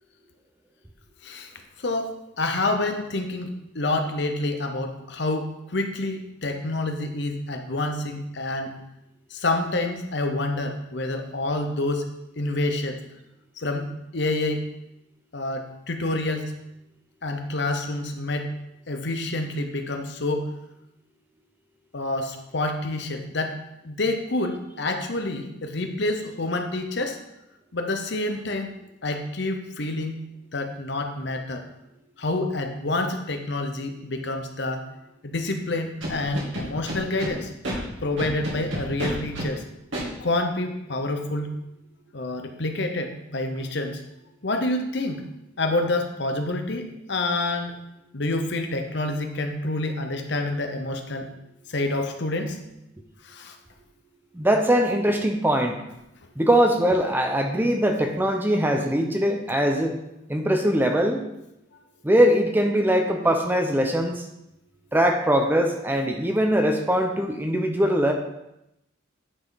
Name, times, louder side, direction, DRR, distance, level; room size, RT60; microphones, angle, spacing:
voice 1, 1.8-8.7 9.3-12.0 12.4-13.0 13.6-13.9 14.1-14.7 15.3-16.5 17.2-18.5 18.9-20.5 21.9-23.6 23.8-27.2 27.7-28.8 29.0-30.2 30.5-31.6 32.2-34.8 35.2-37.5 38.0-39.6 40.2-41.5 42.1-44.0 44.4-45.2 45.6-47.7 48.1-51.3 51.7-52.6 53.2-53.6, left 2 dB, 60° left, 5 dB, 0.9 m, -28 dB
Scratching (performance technique), 36.0-37.3 37.6-37.8 38.2-39.5 39.9-40.0, equal, 75° right, 2.9 m, -30 dB
voice 2, 54.3-55.8 56.4-60.0 60.3-61.2 62.0-64.2 64.9-68.1, equal, 10° right, 3 dB, 0.7 m, -21 dB
9.8 x 5.5 x 4.0 m, 0.86 s
head